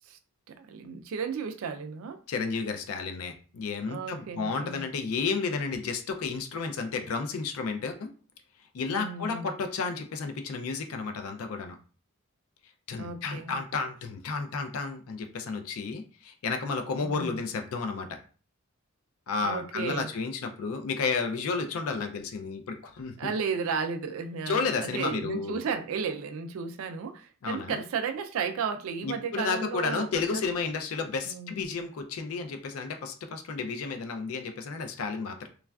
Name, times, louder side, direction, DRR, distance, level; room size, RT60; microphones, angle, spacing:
voice 1, 0.5-2.2 3.9-4.8 8.9-9.5 13.0-13.6 16.9-17.4 19.4-20.1 23.2-30.1 30.3-30.4 31.3-31.5, right 5 dB, 65° right, 0.3 m, -34 dB
voice 2, 2.3-8.1 8.7-11.8 12.9-18.2 19.3-23.3 24.5-25.6 27.4-27.8 29.0-35.5, left 4 dB, 75° left, 0.4 m, -32 dB
3.2 x 2.3 x 2.2 m
head